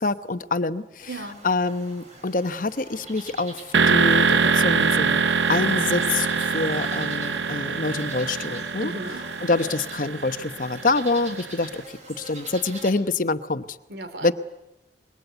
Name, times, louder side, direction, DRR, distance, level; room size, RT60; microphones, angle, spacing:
voice 1, 0.0-1.1 1.4-3.6 3.9-8.9 9.4-13.8 14.2-14.3, left 3 dB, 50° left, 12 dB, 0.9 m, -26 dB
sound 1, 1.0-12.9, right 2 dB, 40° right, 5.2 m, -40 dB
voice 2, 1.1-1.4 8.8-9.2 13.9-14.3, right 1 dB, 65° right, 10 dB, 2.6 m, -35 dB
sound 2, 3.7-11.5, right 5 dB, 85° right, 0.9 m, -23 dB
26.5 x 22.0 x 8.1 m, 0.93 s
head